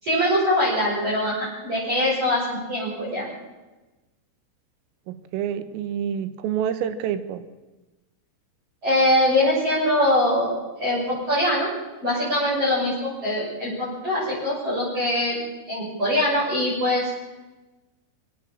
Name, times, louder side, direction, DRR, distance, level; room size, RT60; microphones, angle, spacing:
voice 1, 0.0-3.3 8.8-11.0 11.3-11.7 12.0-15.4 15.7-17.1, left 1 dB, 30° right, -6 dB, 7.9 m, -23 dB
voice 2, 5.1-7.5, right 9 dB, 85° right, 12 dB, 3.9 m, -28 dB
22.0 x 17.5 x 7.3 m, 1.1 s
omnidirectional pair, 5.8 m